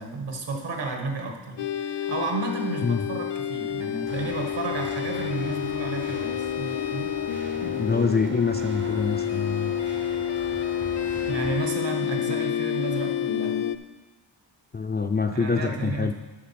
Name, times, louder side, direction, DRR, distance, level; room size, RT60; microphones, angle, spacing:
voice 1, 0.0-7.1 11.3-13.6 15.3-16.1, right 3 dB, 65° right, 3 dB, 1.6 m, -32 dB
sound 1, 1.6-13.8, left 9 dB, 65° left, 0.6 m, -29 dB
sound 2, 4.1-11.6, right 2 dB, 25° right, 0.6 m, -41 dB
voice 2, 7.6-9.7 14.7-16.1, left 4 dB, 25° left, 5 dB, 0.4 m, -26 dB
8.5 x 6.3 x 5.8 m, 1.2 s
wide cardioid pair, 125°, 46 cm